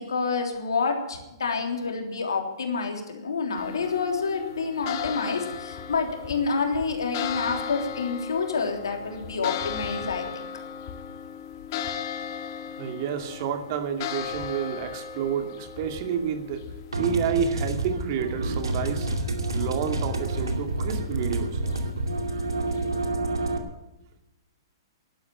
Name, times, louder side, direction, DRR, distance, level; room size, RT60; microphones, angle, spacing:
voice 1, 0.0-10.4, left 4 dB, 80° left, 3 dB, 3.3 m, -28 dB
sound 1, 3.5-22.8, left 8 dB, 50° left, 1.7 m, -37 dB
voice 2, 12.8-16.7 17.0-21.6, right 7 dB, 50° right, 6 dB, 2.3 m, -29 dB
sound 2, 16.9-23.6, right 2 dB, 90° right, 2.5 m, -28 dB
12.0 x 11.5 x 8.9 m, 0.99 s
hypercardioid pair, 125°, 2 cm